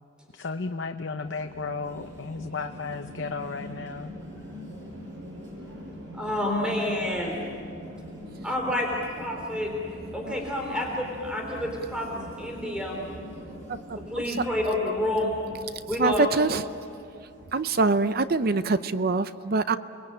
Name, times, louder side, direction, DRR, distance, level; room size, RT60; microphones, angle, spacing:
voice 1, 0.3-4.2, left 4 dB, 65° left, 7 dB, 0.8 m, -34 dB
sound 1, 1.2-18.5, equal, 65° right, 7.0 m, -43 dB
voice 2, 6.1-7.4 8.4-9.7 10.1-13.0 13.9-15.3 15.8-16.3, left 1 dB, 5° right, 0 dB, 3.5 m, -29 dB
voice 3, 16.0-16.6 17.5-19.8, right 3 dB, 50° right, 12 dB, 0.6 m, -24 dB
30.0 x 22.0 x 8.9 m, 2.5 s
head